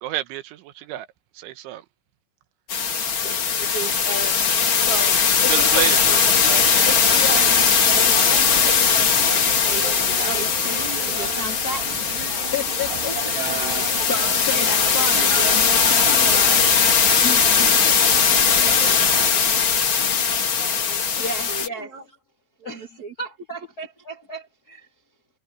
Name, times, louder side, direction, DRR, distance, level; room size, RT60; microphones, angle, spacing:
voice 1, 0.0-1.1 1.4-1.8 5.5-6.9 13.9-14.0, right 14 dB, 90° right, 3.6 m, -30 dB
sound 1, 2.7-21.7, left 6 dB, 50° left, 1.5 m, -19 dB
voice 2, 3.2-5.8 6.8-9.8 10.3-11.9 12.5-13.3 13.6-16.7 17.2-17.9 21.2-21.9 22.6-24.9, left 2 dB, 20° left, 3.4 m, -33 dB
sound 2, 5.7-19.3, right 7 dB, 65° right, 6.2 m, -33 dB
voice 3, 19.9-21.0 21.5-22.0 22.6-23.1, right 4 dB, 45° right, 3.4 m, -41 dB
omnidirectional pair, 5.2 m